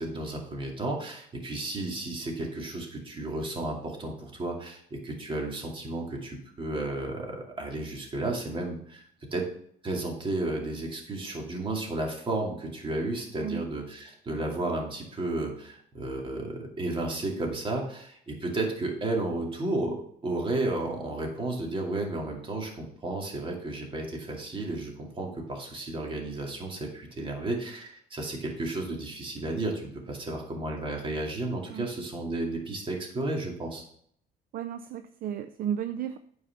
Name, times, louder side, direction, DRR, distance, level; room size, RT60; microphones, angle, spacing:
voice 1, 0.0-9.0 9.3-9.5 9.8-20.0 20.2-33.8, right 2 dB, 30° right, 0 dB, 2.5 m, -33 dB
voice 2, 34.5-36.2, right 9 dB, 60° right, 11 dB, 0.5 m, -33 dB
9.3 x 4.8 x 5.8 m, 0.65 s
cardioid pair, 110°, 17 cm